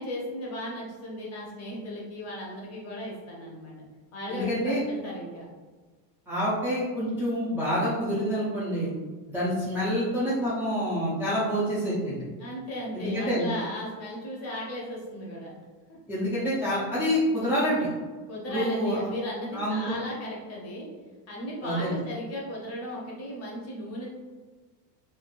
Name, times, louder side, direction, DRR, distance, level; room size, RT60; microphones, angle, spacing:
voice 1, 0.0-3.7 4.1-5.4 12.4-15.5 15.9-16.0 18.3-20.9 21.3-24.1, left 1 dB, 30° left, -3 dB, 0.8 m, -36 dB
voice 2, 4.3-4.8 6.3-8.9 9.3-12.2 12.9-13.5 16.1-17.9 18.5-19.1 19.5-19.9 21.6-22.0, equal, 5° right, -11 dB, 0.5 m, -27 dB
3.2 x 2.5 x 2.5 m, 1.3 s
supercardioid pair, 135°, 49 cm